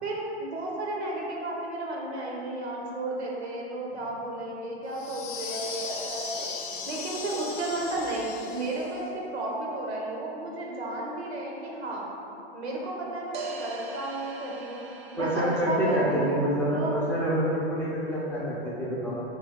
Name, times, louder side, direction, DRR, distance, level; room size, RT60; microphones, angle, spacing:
voice 1, 0.0-6.5 6.9-12.1 12.5-14.8 15.1-16.4 16.7-16.9, right 2 dB, 90° right, -2 dB, 1.0 m, -33 dB
sound 1, 4.9-9.0, left 5 dB, 55° left, 0.6 m, -37 dB
sound 2, 13.3-15.6, right 3 dB, 50° right, 0.5 m, -40 dB
voice 2, 15.2-19.2, equal, 5° left, -8 dB, 0.4 m, -27 dB
3.4 x 2.9 x 3.6 m, 3.0 s
hypercardioid pair, 125°, 32 cm